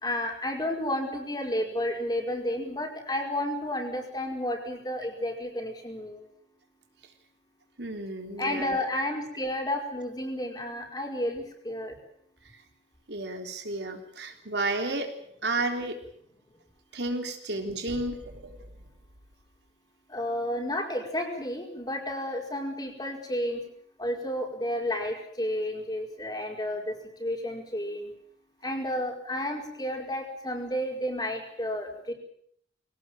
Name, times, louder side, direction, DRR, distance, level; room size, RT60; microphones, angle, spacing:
voice 1, 0.0-6.3 8.4-12.0 20.1-23.6 24.0-28.1 28.6-32.1, left 1 dB, 25° left, 2 dB, 5.0 m, -31 dB
voice 2, 7.8-9.0 12.5-12.6 13.1-15.1 15.4-16.0 16.9-18.6, right 2 dB, 75° right, 5 dB, 3.6 m, -32 dB
23.0 x 17.5 x 9.1 m, 0.67 s
head